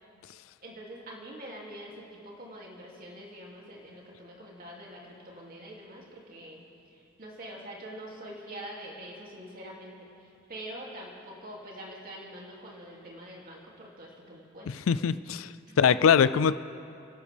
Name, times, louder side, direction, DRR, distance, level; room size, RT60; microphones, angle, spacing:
voice 1, 0.6-6.6 6.9-14.9 15.7-15.8, right 1 dB, 45° right, -3 dB, 2.7 m, -45 dB
voice 2, 14.7-16.5, left 7 dB, 70° left, 15 dB, 0.4 m, -23 dB
30.0 x 11.5 x 3.5 m, 2.6 s
head